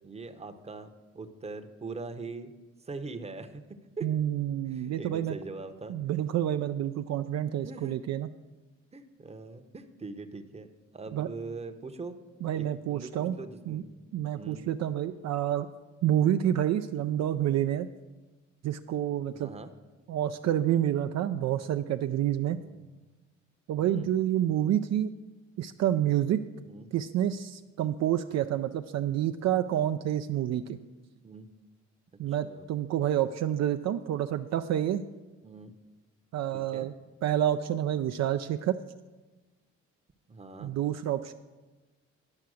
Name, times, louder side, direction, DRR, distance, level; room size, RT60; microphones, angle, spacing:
voice 1, 0.0-2.5 2.8-4.1 4.7-6.0 7.6-8.0 8.9-10.7 10.9-12.2 12.5-14.1 14.4-14.6 19.3-19.7 22.6-22.8 23.8-24.1 26.6-26.9 31.1-31.5 32.4-32.7 35.4-35.7 36.5-36.9 40.3-40.7, right 3 dB, 20° right, 8 dB, 0.8 m, -42 dB
voice 2, 4.0-5.4 5.9-8.3 11.1-11.3 12.4-13.4 13.7-13.8 14.1-15.7 16.0-17.9 18.6-19.5 20.1-22.6 23.7-25.1 25.6-26.4 26.9-30.8 32.2-35.0 36.3-36.9 37.2-38.8 40.6-41.3, right 11 dB, 60° right, 8 dB, 0.4 m, -28 dB
10.5 x 5.7 x 6.3 m, 1.2 s
cardioid pair, 90°, 30 cm